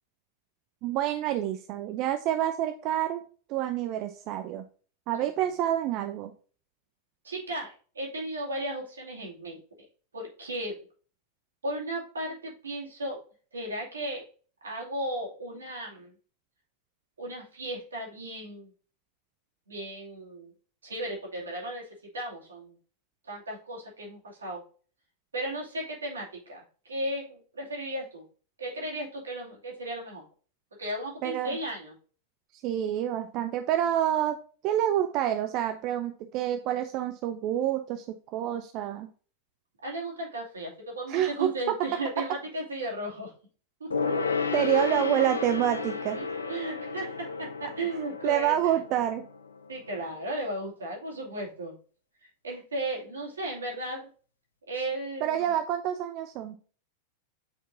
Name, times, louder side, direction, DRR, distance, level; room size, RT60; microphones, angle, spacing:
voice 1, 0.8-3.2 3.5-4.6 5.1-6.3 31.2-31.6 32.5-34.4 34.6-39.1 41.1-41.8 44.5-46.2 48.2-49.2 55.2-56.6, right 11 dB, 40° right, 7 dB, 0.5 m, -28 dB
voice 2, 7.2-9.6 10.1-10.8 11.6-13.2 13.5-14.2 14.6-16.1 17.2-18.7 19.7-20.5 20.8-21.9 22.1-22.8 23.2-24.6 25.3-26.6 26.9-28.2 28.6-30.2 30.8-31.9 39.8-43.3 43.8-43.9 46.1-48.5 49.7-51.7 52.4-54.1 54.7-55.5, right 1 dB, 75° right, -2 dB, 2.6 m, -35 dB
Gong, 43.9-49.8 50.1-50.2, left 4 dB, 75° left, 0.6 m, -32 dB
8.0 x 4.6 x 2.7 m, 0.40 s
figure-of-eight pair, 90°, 0 cm